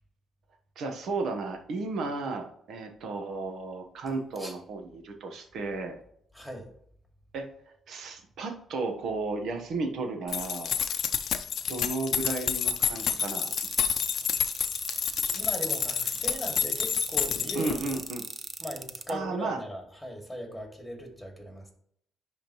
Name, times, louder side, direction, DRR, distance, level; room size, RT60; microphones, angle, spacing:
voice 1, 0.8-6.0 7.3-7.5 7.9-10.8 11.7-13.5 17.5-18.2 19.1-19.6, right 3 dB, 70° right, 5 dB, 1.2 m, -33 dB
voice 2, 6.3-6.7 14.9-17.9 18.6-21.6, equal, ahead, 2 dB, 2.3 m, -39 dB
sound 1, 10.3-18.0, left 8 dB, 65° left, 0.6 m, -29 dB
sound 2, 13.1-19.1, right 3 dB, 30° right, 0.6 m, -38 dB
10.0 x 3.6 x 3.1 m, 0.68 s
cardioid pair, 90°, 0 cm